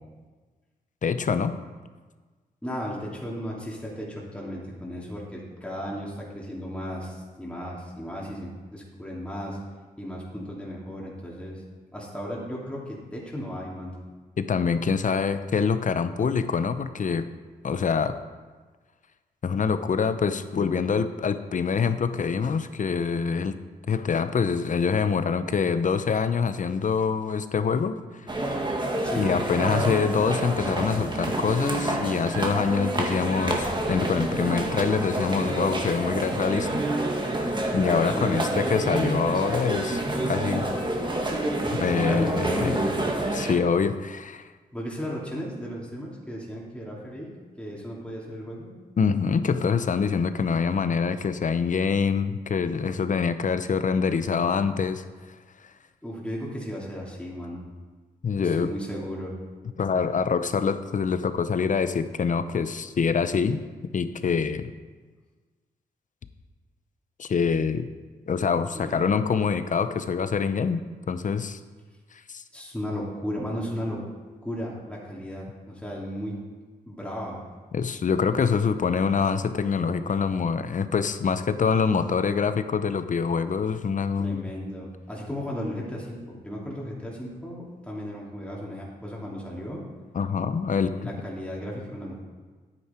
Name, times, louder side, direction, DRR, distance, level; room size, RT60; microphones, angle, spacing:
voice 1, 1.0-1.6 14.4-17.3 17.6-18.2 19.4-23.6 23.9-28.0 29.2-36.7 37.7-40.7 41.7-42.9 43.3-44.5 49.0-55.0 58.2-58.7 59.8-63.6 63.9-64.7 67.2-67.9 68.3-71.6 72.1-72.4 77.7-84.4 90.1-91.1, left 6 dB, 50° left, 11 dB, 0.7 m, -25 dB
voice 2, 2.6-9.6 10.0-11.6 11.9-14.0 29.0-29.3 38.1-38.5 41.6-43.0 44.7-47.3 47.6-48.7 56.0-57.6 58.4-59.3 68.7-69.1 72.5-74.0 74.4-76.4 76.9-77.4 84.2-89.8 91.0-92.2, equal, 5° left, -4 dB, 2.8 m, -35 dB
sound 1, 28.3-43.6, right 1 dB, 30° right, 1.9 m, -28 dB
9.6 x 9.0 x 4.5 m, 1.4 s
cardioid pair, 60°, 16 cm